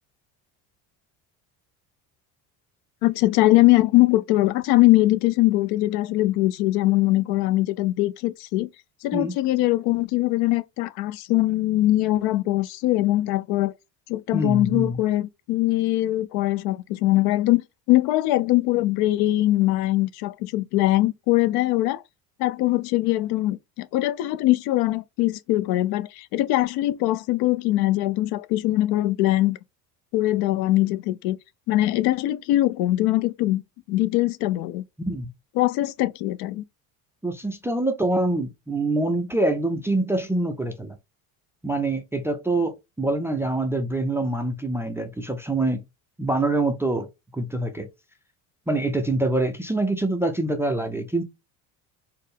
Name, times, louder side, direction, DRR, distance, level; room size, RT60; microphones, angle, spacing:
voice 1, 3.0-8.7 9.0-13.7 14.1-17.6 17.9-22.0 22.4-29.6 30.1-31.4 31.7-33.6 33.9-34.8 35.6-36.6, left 16 dB, 70° left, 0.5 m, -22 dB
voice 2, 14.3-15.0 35.1-35.3 37.2-40.9 41.6-45.8 46.2-47.1 47.3-47.9 48.7-51.2, right 2 dB, 5° right, 0.3 m, -25 dB
4.4 x 2.0 x 3.3 m
cardioid pair, 125°, 39 cm